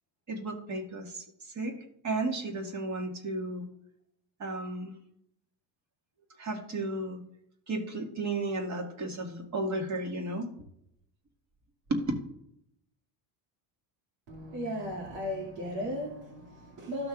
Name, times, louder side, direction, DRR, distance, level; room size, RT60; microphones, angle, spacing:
voice 1, 0.3-1.2 1.6-1.7 2.0-3.7 4.4-4.9 6.4-7.2 7.7-10.5 11.9-12.0, right 2 dB, 35° right, 1.9 m, -33 dB
voice 2, 14.3-17.1, equal, 70° right, 2.3 m, -36 dB
14.0 x 5.9 x 2.4 m
cardioid pair, 125°, 46 cm